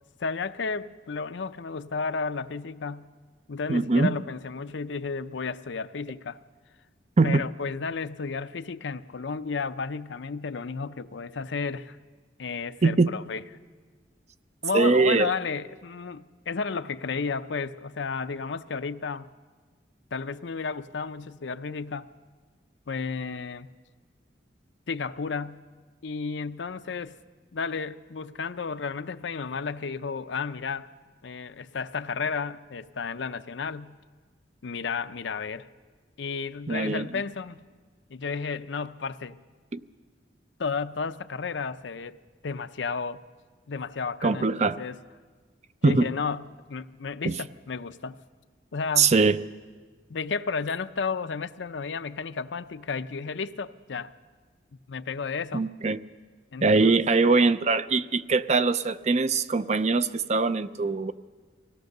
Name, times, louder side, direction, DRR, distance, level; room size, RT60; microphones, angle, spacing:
voice 1, 0.2-3.1 3.5-6.4 7.2-12.0 12.4-13.4 14.6-19.3 20.1-22.1 22.9-23.7 24.9-25.7 26.0-27.2 27.5-30.9 31.2-34.0 34.6-35.7 36.2-37.7 38.1-39.4 40.6-43.2 43.7-44.5 44.8-45.0 45.8-48.2 48.7-49.2 50.1-54.1 54.9-55.7 56.5-57.4, left 5 dB, 75° left, 0.6 m, -32 dB
voice 2, 3.7-4.2 7.2-7.4 12.8-13.1 14.7-15.3 36.7-37.0 39.7-39.8 44.2-44.8 45.8-46.1 47.3-47.4 49.0-49.4 55.5-56.0 56.6-61.1, right 3 dB, 35° right, 0.5 m, -22 dB
23.5 x 17.0 x 6.6 m
head